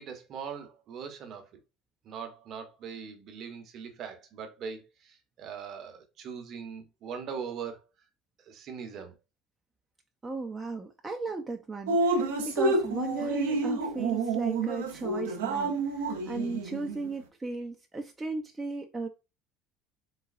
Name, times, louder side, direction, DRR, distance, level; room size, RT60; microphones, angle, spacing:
voice 1, 0.0-1.5 2.0-7.8 8.4-9.1, right 6 dB, 50° right, 0.9 m, -41 dB
voice 2, 10.2-19.1, right 3 dB, 20° right, 0.5 m, -36 dB
Drip, 11.9-17.1, right 3 dB, 80° right, 0.6 m, -29 dB
4.0 x 2.2 x 2.5 m
hypercardioid pair, 70°, 0 cm